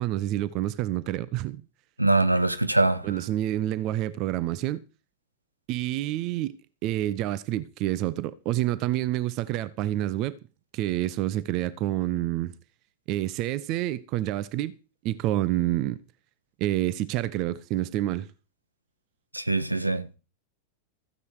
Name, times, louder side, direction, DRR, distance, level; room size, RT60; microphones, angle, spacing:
voice 1, 0.0-1.6 3.0-4.8 5.7-6.5 6.8-10.4 10.7-12.5 13.1-14.8 15.0-16.0 16.6-18.3, right 14 dB, 40° right, 0.9 m, -28 dB
voice 2, 2.0-3.1 19.3-20.1, right 2 dB, 85° right, 1.3 m, -23 dB
15.0 x 9.8 x 4.9 m
figure-of-eight pair, 90°, 0 cm